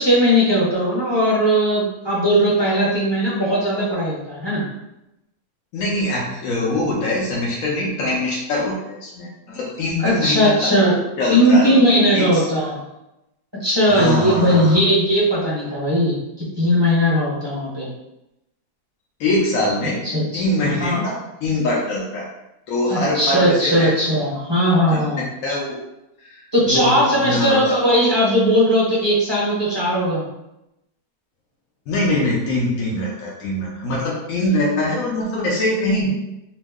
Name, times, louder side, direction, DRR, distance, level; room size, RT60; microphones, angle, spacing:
voice 1, 0.0-4.6 10.0-10.9 11.3-12.8 13.6-17.9 20.1-20.4 20.8-21.0 22.9-25.2 26.5-30.2, equal, 25° right, -8 dB, 0.7 m, -18 dB
voice 2, 5.7-10.7 11.2-11.7 12.1-12.7 13.9-14.8 19.2-20.0 20.3-22.3 22.7-23.9 24.9-25.8 26.2-27.7 28.0-28.1 31.9-36.1, left 1 dB, 70° left, -4 dB, 1.0 m, -23 dB
3.0 x 2.0 x 3.4 m, 0.90 s
omnidirectional pair, 1.6 m